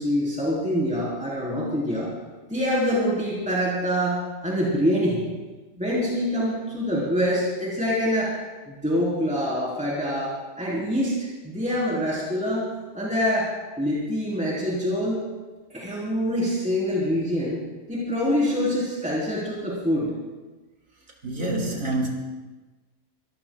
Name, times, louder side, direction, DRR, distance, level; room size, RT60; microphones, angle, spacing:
voice 1, 0.0-2.1 2.5-5.2 5.8-8.3 8.7-12.7 12.9-13.5 13.8-15.2 15.7-17.6 17.9-20.1, equal, 5° right, 4.0 m, -25 dB
voice 2, 21.2-22.1, right 2 dB, 75° right, 3.3 m, -26 dB
25.0 x 19.5 x 2.4 m
omnidirectional pair, 1.6 m